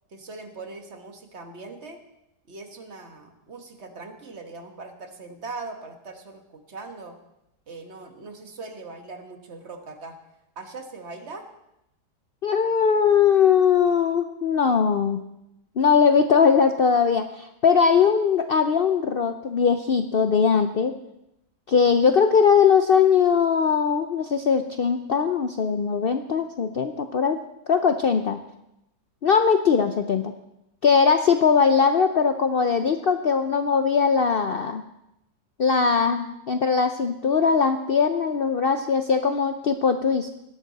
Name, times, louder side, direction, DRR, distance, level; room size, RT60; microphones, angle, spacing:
voice 1, 0.1-2.0 2.5-7.2 7.7-10.2 10.5-11.5, right 3 dB, 40° right, 6 dB, 1.5 m, -40 dB
voice 2, 12.4-15.2 15.8-20.9 21.7-27.4 27.7-28.4 29.2-30.2 30.8-34.8 35.6-40.3, left 6 dB, 90° left, 8 dB, 0.5 m, -20 dB
18.0 x 12.5 x 4.1 m, 0.85 s
omnidirectional pair, 1.8 m